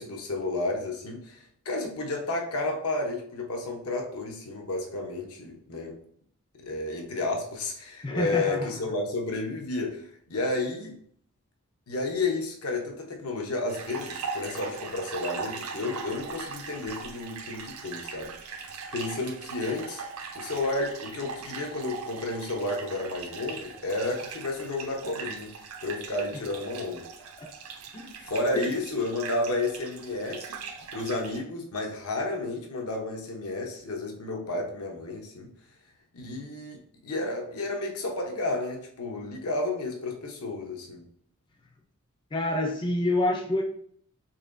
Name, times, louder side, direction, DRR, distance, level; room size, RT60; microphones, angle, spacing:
voice 1, 0.0-6.0 6.6-11.0 11.9-18.6 18.9-20.0 20.3-27.0 28.2-30.5 30.9-35.5 36.1-41.0, left 2 dB, 85° left, 1 dB, 0.8 m, -32 dB
voice 2, 8.0-8.7 27.9-28.2 28.5-28.7 42.3-43.6, left 1 dB, 20° left, 1 dB, 0.3 m, -27 dB
sound 1, 13.7-31.4, right 5 dB, 75° right, 0.5 m, -40 dB
4.1 x 2.9 x 2.5 m, 0.62 s
head